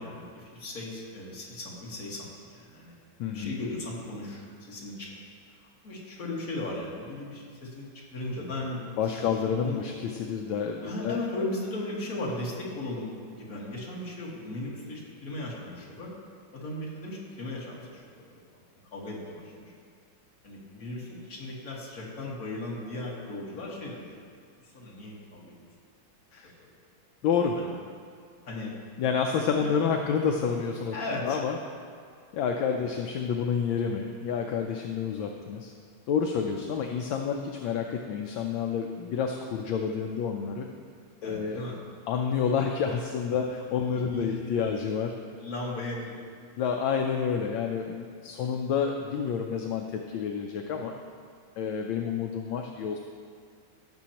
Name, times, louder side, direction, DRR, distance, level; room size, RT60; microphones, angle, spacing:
voice 1, 0.0-2.9 3.3-5.1 5.8-9.3 9.6-9.8 10.8-16.1 16.5-18.0 18.9-19.7 20.4-24.0 24.7-25.7 26.3-26.7 27.6-27.7 28.4-28.7 29.5-29.8 30.9-31.4 41.2-41.7 44.1-44.4 44.7-44.8 45.4-46.1, left 2 dB, 45° left, -4 dB, 2.0 m, -37 dB
voice 2, 3.2-3.5 9.0-11.2 26.3-26.5 27.2-27.6 29.0-31.0 31.2-31.6 32.3-35.7 36.1-40.7 41.2-41.6 42.1-45.1 46.6-50.9 51.6-53.0, left 6 dB, 75° left, 3 dB, 1.3 m, -29 dB
17.0 x 7.0 x 2.9 m, 2.2 s
omnidirectional pair, 2.2 m